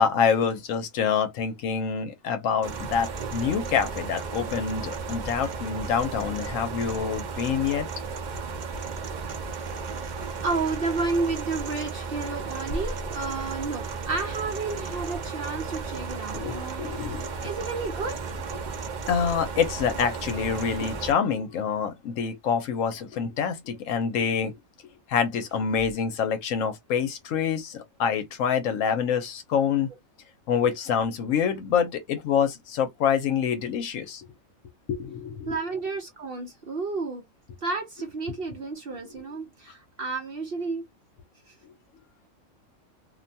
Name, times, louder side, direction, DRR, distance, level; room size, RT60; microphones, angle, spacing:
voice 1, 0.0-7.9 16.3-17.5 18.5-18.6 19.1-24.6 25.1-29.9 30.5-34.3 34.9-35.6 38.0-38.1 39.0-39.1, left 7 dB, 75° left, 0.9 m, -26 dB
sound 1, 2.6-21.1, right 4 dB, 80° right, 0.4 m, -34 dB
voice 2, 9.8-18.2 35.5-37.2 37.6-40.8 41.5-41.6, right 3 dB, 55° right, 0.7 m, -31 dB
2.6 x 2.2 x 2.6 m
omnidirectional pair, 1.5 m